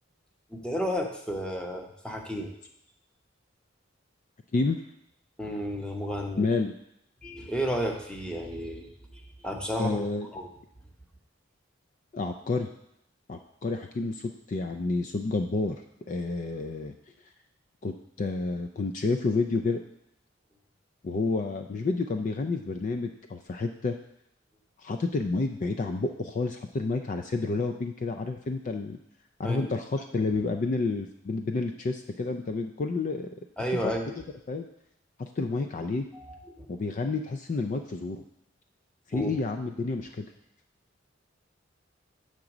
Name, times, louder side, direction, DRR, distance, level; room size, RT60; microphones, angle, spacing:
voice 1, 0.5-2.5 5.4-6.4 7.2-10.0 10.3-10.5 29.4-29.7 33.6-34.1 36.1-36.7 39.1-39.3, equal, 5° left, 2 dB, 0.8 m, -32 dB
voice 2, 6.4-6.7 9.8-10.3 12.1-12.7 13.3-16.9 17.8-19.8 21.0-24.0 24.8-29.0 29.4-33.3 33.8-33.9 34.5-34.7 35.2-36.1 36.7-38.2 39.1-40.3, left 3 dB, 40° left, 6 dB, 0.4 m, -30 dB
7.5 x 3.9 x 5.9 m, 0.77 s
head